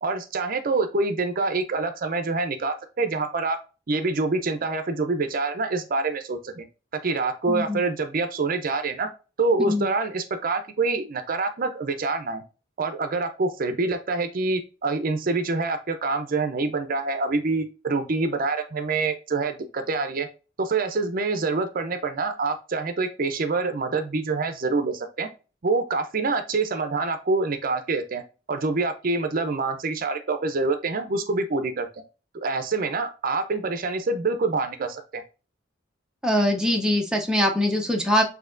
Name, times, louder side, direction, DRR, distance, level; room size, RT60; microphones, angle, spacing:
voice 1, 0.0-3.6 3.9-6.7 7.0-9.1 9.4-12.4 12.8-20.3 20.6-25.3 25.6-28.2 28.5-32.0 32.3-35.2, right 3 dB, 50° right, 8 dB, 0.5 m, -26 dB
voice 2, 7.5-7.8 9.6-9.9 36.2-38.2, left 1 dB, 5° right, 1 dB, 0.6 m, -22 dB
6.5 x 2.7 x 2.5 m, 0.33 s
head